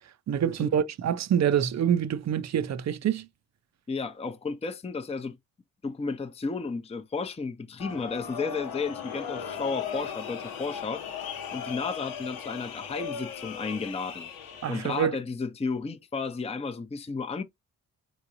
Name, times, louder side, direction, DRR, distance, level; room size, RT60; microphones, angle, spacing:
voice 1, 0.3-3.3 14.6-15.2, right 9 dB, 50° right, 0.5 m, -26 dB
voice 2, 3.9-5.4 5.8-11.0 11.5-14.3 14.7-17.4, left 4 dB, 15° left, 0.6 m, -33 dB
sound 1, 7.8-15.0, left 7 dB, 85° left, 0.9 m, -37 dB
3.7 x 3.0 x 2.6 m
supercardioid pair, 50°, 35 cm